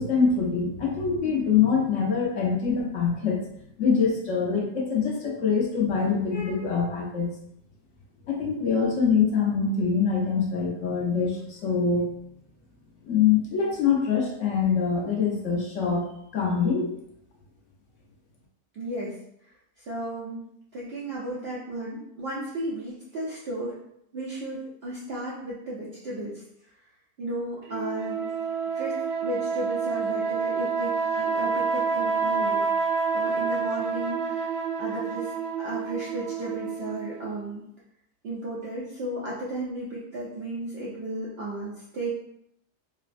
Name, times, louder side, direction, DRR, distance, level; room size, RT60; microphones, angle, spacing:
voice 1, 0.0-3.4 3.8-7.3 8.3-12.1 13.0-16.1 16.3-16.9, left 6 dB, 60° left, -2 dB, 0.9 m, -24 dB
voice 2, 18.7-19.1 19.8-20.4 20.7-23.7 24.1-26.4 27.2-28.3 28.8-32.6 33.1-35.3 35.6-37.6 38.2-42.1, right 1 dB, 70° right, -6 dB, 0.5 m, -34 dB
sound 1, 27.7-37.4, right 5 dB, 90° right, 1.2 m, -28 dB
4.0 x 2.1 x 2.5 m, 0.74 s
omnidirectional pair, 1.8 m